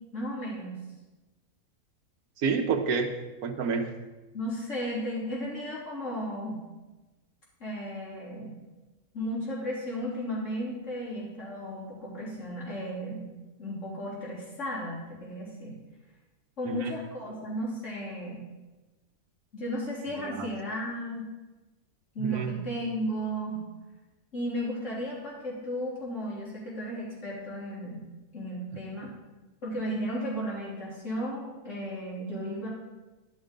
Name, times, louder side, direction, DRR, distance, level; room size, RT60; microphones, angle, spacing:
voice 1, 0.1-0.8 4.3-6.6 7.6-8.6 9.1-13.3 13.6-15.7 16.6-18.4 19.5-21.3 22.2-23.6 24.3-28.0 28.3-29.1 29.6-32.7, equal, 55° left, -7 dB, 3.6 m, -34 dB
voice 2, 2.4-3.1 3.4-3.9 16.6-16.9 20.2-20.5 22.2-22.5, right 5 dB, 75° right, 6 dB, 1.3 m, -28 dB
11.0 x 6.3 x 5.2 m, 1.2 s
omnidirectional pair, 1.6 m